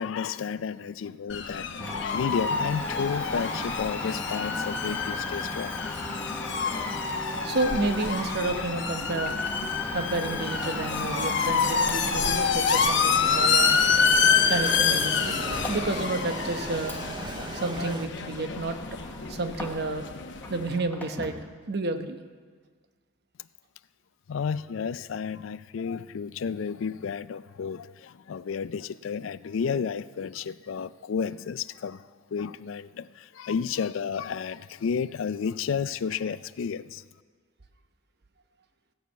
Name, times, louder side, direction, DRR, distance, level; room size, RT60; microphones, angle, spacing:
voice 1, 0.0-5.8 24.3-37.0, left 6 dB, 85° left, 0.4 m, -32 dB
sound 1, 1.3-20.8, left 5 dB, 65° left, 0.9 m, -27 dB
Domestic sounds home sounds, 1.8-20.1 20.4-21.5, left 1 dB, 10° left, 1.0 m, -38 dB
voice 2, 7.4-9.4 9.9-13.7 14.5-15.4 15.7-17.0 17.5-19.0 19.3-20.1 20.5-21.4 21.7-22.2, right 2 dB, 55° right, 0.9 m, -30 dB
Printer, 11.9-18.1, right 3 dB, 25° right, 0.4 m, -38 dB
16.0 x 6.4 x 8.2 m
head